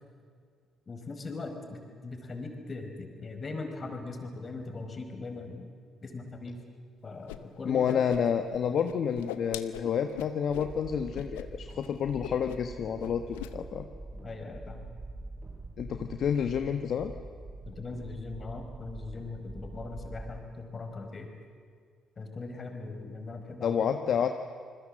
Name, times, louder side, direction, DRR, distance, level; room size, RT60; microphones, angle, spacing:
voice 1, 0.9-5.7 6.0-6.6 7.0-8.0 14.2-14.9 17.7-21.3 22.2-23.8, left 3 dB, 40° left, 5 dB, 5.0 m, -40 dB
Whoosh swoosh swish, 7.3-7.4 7.7-8.6 8.8-10.7 11.1-11.5 11.7-11.9 12.2-12.7 13.0-13.5, left 15 dB, 85° left, 0.9 m, -40 dB
voice 2, 7.6-13.9 15.8-17.1 23.6-24.3, left 7 dB, 60° left, 7 dB, 1.2 m, -29 dB
sound 1, 10.5-20.4, right 2 dB, 30° right, 6.1 m, -45 dB
28.5 x 21.0 x 7.7 m, 2.1 s
hypercardioid pair, 50°, 0 cm